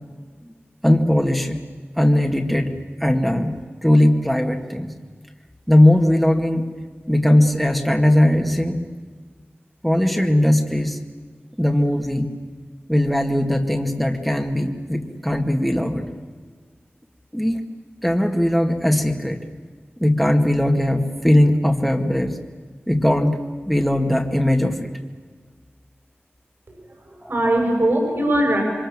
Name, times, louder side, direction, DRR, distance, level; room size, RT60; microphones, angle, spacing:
voice 1, 0.8-1.6 2.0-4.9 5.7-6.7 7.1-8.8 9.8-11.0 11.6-12.3 12.9-16.1 17.3-17.6 18.0-19.4 20.0-22.4 22.9-23.4 23.7-24.9, left 1 dB, ahead, 2 dB, 2.2 m, -19 dB
voice 2, 26.7-28.6, right 1 dB, 60° right, 1 dB, 7.4 m, -21 dB
27.0 x 25.0 x 7.6 m, 1.6 s
wide cardioid pair, 80°, 4 cm